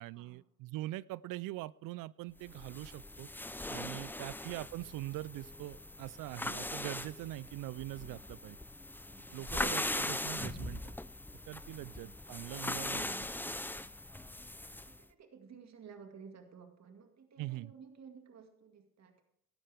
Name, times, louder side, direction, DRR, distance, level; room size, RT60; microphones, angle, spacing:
voice 1, 0.0-3.3 3.7-8.6 9.3-10.9 11.5-13.1 17.4-17.7, right 17 dB, 65° right, 22 dB, 0.5 m, -43 dB
sound 1, 2.4-15.0, left 1 dB, 5° left, 0.6 m, -40 dB
voice 2, 3.9-4.3 9.1-9.6 11.7-12.1 12.7-13.3 14.9-19.2, right 6 dB, 50° right, 5 dB, 2.1 m, -55 dB
18.0 x 13.0 x 3.5 m, 0.74 s
hypercardioid pair, 55°, 35 cm